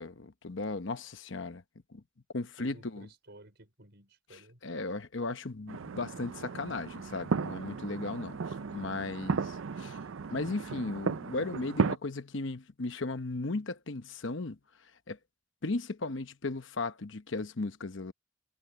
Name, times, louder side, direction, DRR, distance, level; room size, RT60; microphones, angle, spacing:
voice 1, 0.0-1.6 1.9-2.0 2.3-3.1 4.3-8.4 8.7-9.4 9.8-10.0 10.3-14.6 15.1-15.2 15.6-18.1, left 3 dB, 60° left, 1.0 m, -36 dB
voice 2, 2.4-4.6 9.0-9.5, right 1 dB, 55° right, 5.2 m, -54 dB
sound 1, 5.7-12.0, right 5 dB, 70° right, 0.5 m, -35 dB
head